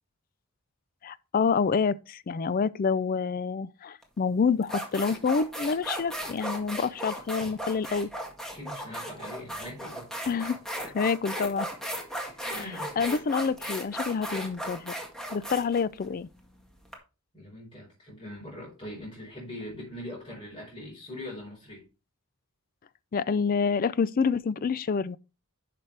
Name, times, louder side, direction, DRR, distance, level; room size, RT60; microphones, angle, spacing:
voice 1, 1.0-8.1 10.3-10.6 10.9-11.7 13.0-14.9 15.3-16.3 23.1-25.2, left 5 dB, 40° left, 0.4 m, -27 dB
sound 1, 4.0-4.2 4.6-16.9, equal, 5° left, 1.7 m, -36 dB
voice 2, 8.5-10.1 12.3-13.0 17.3-21.8, left 1 dB, 25° left, 4.6 m, -41 dB
10.5 x 6.0 x 3.3 m
head